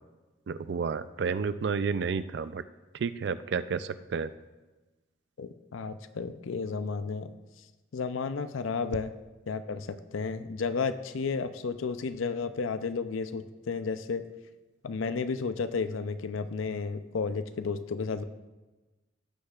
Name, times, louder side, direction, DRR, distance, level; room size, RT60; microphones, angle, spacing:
voice 1, 0.5-2.6 3.0-4.3, right 5 dB, 55° right, 14 dB, 0.3 m, -31 dB
voice 2, 5.4-7.3 7.9-9.1 9.5-14.2 14.8-18.2, left 5 dB, 85° left, 12 dB, 0.5 m, -32 dB
15.5 x 6.5 x 2.4 m, 1.2 s
head